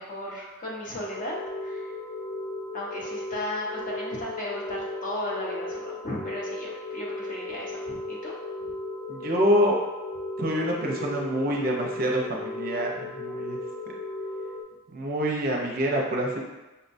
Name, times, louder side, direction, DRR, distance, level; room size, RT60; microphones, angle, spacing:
voice 1, 0.0-1.3 1.6-1.9 2.7-8.3, left 1 dB, 40° left, -4 dB, 0.8 m, -35 dB
sound 1, 1.1-14.6, left 2 dB, 25° left, 0.4 m, -36 dB
voice 2, 9.1-9.8 10.4-13.6 14.9-16.4, equal, 45° right, -1 dB, 0.5 m, -26 dB
5.4 x 2.2 x 2.6 m, 1.1 s
head